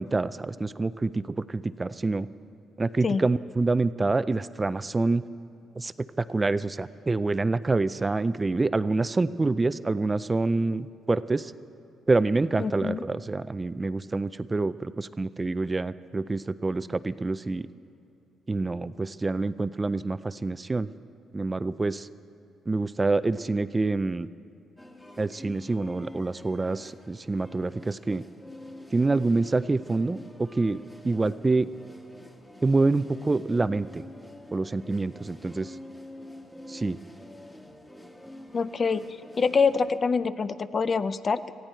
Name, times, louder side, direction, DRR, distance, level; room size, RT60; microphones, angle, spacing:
voice 1, 0.0-2.3 2.8-5.2 5.8-11.5 12.1-17.7 18.5-20.9 21.3-22.1 22.7-24.3 25.2-28.2 28.9-31.7 32.6-34.0 34.5-35.8 36.7-37.0, right 3 dB, 20° right, 15 dB, 0.4 m, -27 dB
voice 2, 12.6-13.0 38.5-39.0 39.4-41.5, left 5 dB, 40° left, 13 dB, 0.5 m, -25 dB
sound 1, 24.8-40.0, left 1 dB, 10° left, 1.6 m, -47 dB
19.0 x 15.0 x 4.5 m, 2.6 s
cardioid pair, 90°, 0 cm